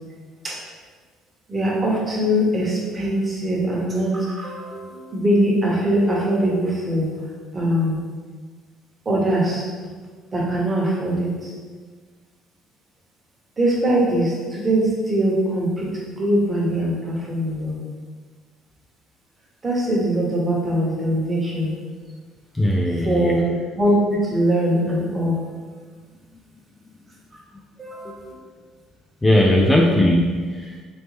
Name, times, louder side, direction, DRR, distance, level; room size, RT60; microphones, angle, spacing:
voice 1, 1.5-7.1 7.5-8.0 9.0-9.7 10.3-11.3 13.6-15.9 16.2-17.8 19.6-21.7 23.0-23.5 23.8-25.4 27.8-28.3, right 1 dB, 25° right, -4 dB, 1.2 m, -21 dB
voice 2, 22.5-23.6 29.2-30.8, left 1 dB, 15° left, 0 dB, 0.3 m, -19 dB
4.1 x 3.2 x 3.3 m, 1.5 s
cardioid pair, 110°, 0 cm